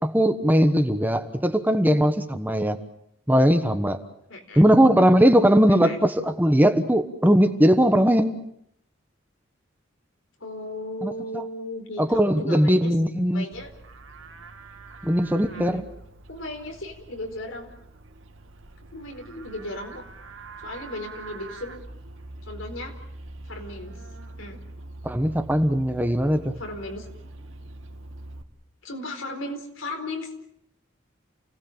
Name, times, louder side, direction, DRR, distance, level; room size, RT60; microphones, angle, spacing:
voice 1, 0.0-2.8 3.3-4.0 4.6-8.3 11.0-11.4 12.0-13.4 15.0-15.8 25.0-26.5, equal, 10° right, 8 dB, 1.2 m, -19 dB
voice 2, 4.3-4.6 5.7-6.0 10.4-12.9 13.3-13.7 15.5-15.8 16.3-17.7 18.9-20.0 20.6-21.8 22.4-22.9 23.5-23.9 24.4-24.6 26.6-27.1 28.8-30.3, left 1 dB, 90° left, 5 dB, 4.2 m, -36 dB
Livestock farm animals working animals, 13.5-28.4, right 2 dB, 85° right, 2.1 m, -43 dB
29.0 x 18.5 x 7.3 m, 0.72 s
head